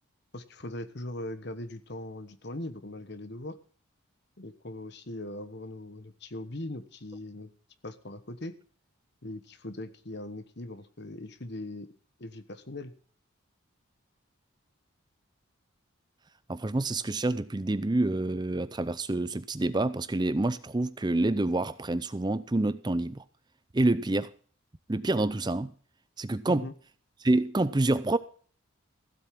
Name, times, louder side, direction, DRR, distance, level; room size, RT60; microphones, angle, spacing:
voice 1, 0.3-3.6 4.4-7.5 7.8-8.5 9.2-11.9 12.2-12.9 26.5-26.7, left 1 dB, 50° left, 1.3 m, -40 dB
voice 2, 16.5-23.2 23.7-24.3 24.9-25.7 26.2-26.6 27.2-28.2, right 2 dB, 20° right, 0.5 m, -27 dB
15.5 x 8.1 x 6.0 m
head